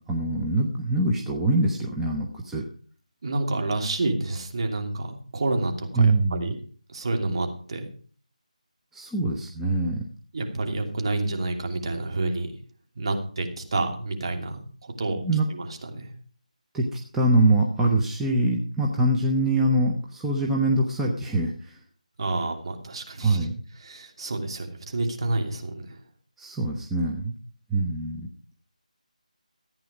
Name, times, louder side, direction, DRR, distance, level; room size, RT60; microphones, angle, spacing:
voice 1, 0.1-2.6 6.0-6.5 8.9-10.0 15.2-15.5 16.7-21.8 23.2-23.5 26.4-27.3 27.7-28.3, right 2 dB, 5° right, -2 dB, 0.8 m, -24 dB
voice 2, 3.2-6.6 6.9-7.9 10.3-12.5 13.0-16.1 22.2-23.5 23.8-26.0, right 2 dB, 45° right, 3 dB, 2.8 m, -29 dB
14.5 x 9.1 x 5.0 m, 0.43 s
figure-of-eight pair, 165°, 4 cm